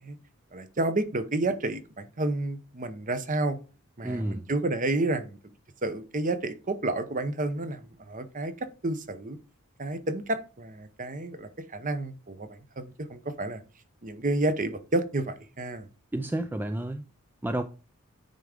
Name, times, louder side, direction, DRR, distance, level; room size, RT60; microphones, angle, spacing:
voice 1, 0.5-3.6 4.0-5.4 5.8-9.4 9.8-13.6 14.0-15.9, right 2 dB, 35° right, 0.8 m, -30 dB
voice 2, 4.0-4.5 16.1-17.0 17.4-17.6, right 1 dB, 10° right, 0.3 m, -30 dB
9.2 x 3.6 x 4.9 m
head